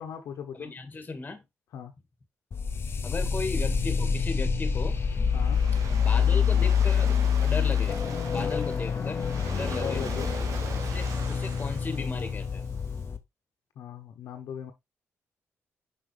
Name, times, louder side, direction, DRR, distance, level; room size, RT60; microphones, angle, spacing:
voice 1, 0.0-0.7 1.7-1.9 5.3-5.6 8.4-8.6 9.6-10.3 13.8-14.7, left 8 dB, 80° left, 1.1 m, -38 dB
voice 2, 0.5-1.4 3.0-5.0 5.9-7.1 7.4-8.0 8.2-9.2 9.5-10.1 10.8-12.6, left 3 dB, 30° left, 2.1 m, -36 dB
sound 1, 2.5-13.2, left 6 dB, 45° left, 1.0 m, -26 dB
Waves surf, 4.7-12.9, right 5 dB, 75° right, 1.8 m, -42 dB
6.1 x 6.1 x 3.4 m
cardioid pair, 80°, 6 cm